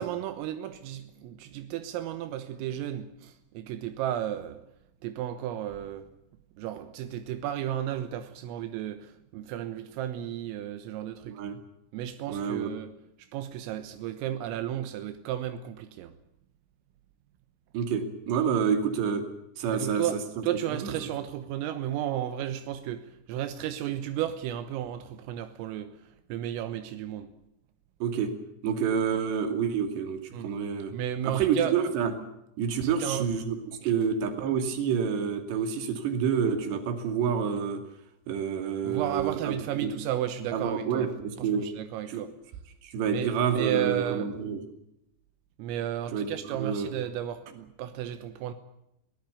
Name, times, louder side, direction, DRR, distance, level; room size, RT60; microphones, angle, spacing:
voice 1, 0.0-4.6 5.0-6.1 6.6-11.4 11.9-12.9 13.2-16.1 19.7-20.2 20.4-25.9 26.3-27.3 30.3-30.5 30.9-31.8 32.8-33.3 33.8-33.9 38.8-41.1 41.4-42.3 43.1-44.3 45.6-48.5, right 11 dB, 85° right, 3.8 m, -33 dB
voice 2, 11.3-11.6 12.3-12.7 17.7-19.2 19.6-20.0 20.8-20.9 28.0-28.3 28.6-30.9 31.3-32.1 32.6-37.8 38.3-39.9 40.5-41.7 42.1-42.2 42.8-44.6 46.1-46.9, right 7 dB, 60° right, 4.5 m, -28 dB
23.5 x 18.0 x 8.3 m
omnidirectional pair, 6.0 m